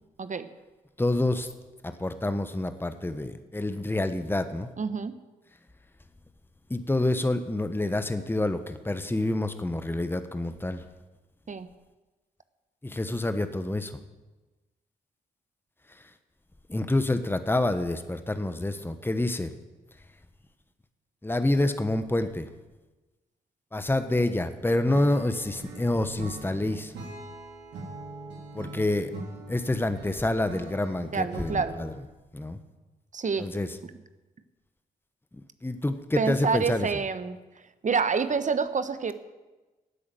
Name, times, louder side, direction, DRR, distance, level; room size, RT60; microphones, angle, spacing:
voice 1, 1.0-1.5 1.8-4.7 6.7-10.8 12.8-13.9 16.7-19.5 21.2-22.5 23.7-26.9 28.5-29.1 29.5-31.9 32.3-32.6 33.4-33.8 35.6-36.9, left 1 dB, 10° left, 10 dB, 1.2 m, -27 dB
voice 2, 4.8-5.1 11.5-11.7 31.1-31.8 33.1-33.5 36.2-37.4 37.8-39.1, right 5 dB, 45° right, 12 dB, 1.1 m, -27 dB
Acoustic guitar / Strum, 24.8-32.0, right 2 dB, 75° right, 3.2 m, -42 dB
12.5 x 8.5 x 9.1 m, 1.2 s
hypercardioid pair, 40°, 18 cm